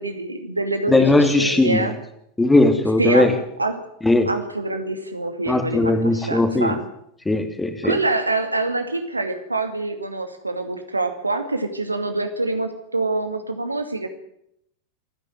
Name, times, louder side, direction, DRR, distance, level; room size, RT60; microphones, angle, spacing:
voice 1, 0.0-1.9 3.0-3.3 3.6-3.8 4.3-6.8 7.8-14.1, right 2 dB, 80° right, 7 dB, 2.4 m, -25 dB
voice 2, 0.9-1.9 2.4-3.3 4.0-4.3 5.5-6.8 7.3-8.0, left 2 dB, 10° left, 7 dB, 2.8 m, -18 dB
27.0 x 10.5 x 9.3 m, 0.76 s
figure-of-eight pair, 90°, 0 cm